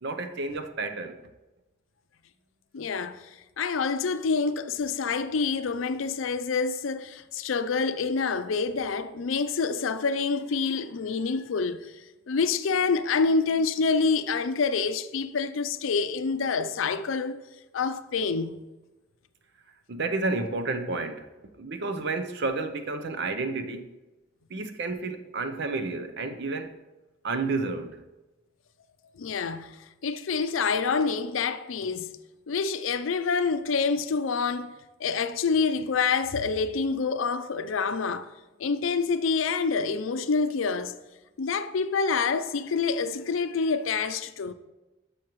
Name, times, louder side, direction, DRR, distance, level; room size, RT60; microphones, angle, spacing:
voice 1, 0.0-1.2 19.9-21.3 21.5-24.0 24.5-26.8 27.2-28.0, right 3 dB, 60° right, 0.6 m, -31 dB
voice 2, 2.7-3.2 3.6-11.9 12.3-17.4 17.7-18.6 29.2-29.8 30.0-32.2 32.5-38.3 38.6-41.0 41.4-44.5, left 4 dB, 90° left, 0.5 m, -27 dB
10.5 x 6.5 x 3.1 m
head